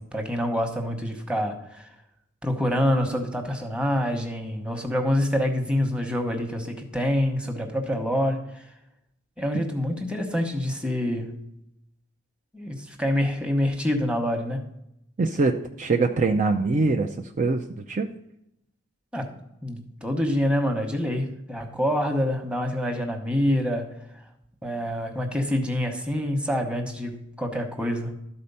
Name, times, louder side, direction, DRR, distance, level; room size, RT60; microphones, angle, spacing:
voice 1, 0.0-1.8 2.4-8.4 9.4-11.4 12.5-14.6 19.1-19.3 19.6-24.0 24.6-28.1, equal, 5° right, 4 dB, 1.1 m, -26 dB
voice 2, 15.2-18.1, right 3 dB, 40° right, 3 dB, 0.5 m, -24 dB
12.5 x 4.3 x 5.5 m, 0.81 s
head